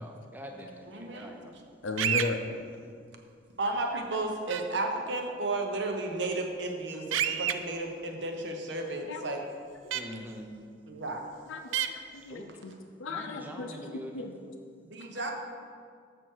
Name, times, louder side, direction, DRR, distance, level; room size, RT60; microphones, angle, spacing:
voice 1, 0.0-1.6 9.9-10.5 12.3-12.5 13.1-14.3, equal, 10° right, 2 dB, 0.7 m, -44 dB
voice 2, 0.9-1.3 3.6-9.4 10.9-11.2 14.9-15.3, right 2 dB, 65° right, 3 dB, 0.9 m, -33 dB
voice 3, 1.8-2.4 9.1-9.2 9.8-10.0 11.5-11.6 11.9-12.7 13.0-13.7 14.1-14.3, left 3 dB, 80° left, 4 dB, 0.6 m, -35 dB
sound 1, 2.0-2.3 4.5-4.6 7.1-7.5 9.9-10.0 11.7-11.9, right 9 dB, 85° right, 0.4 m, -27 dB
7.7 x 6.2 x 4.6 m, 2.2 s
head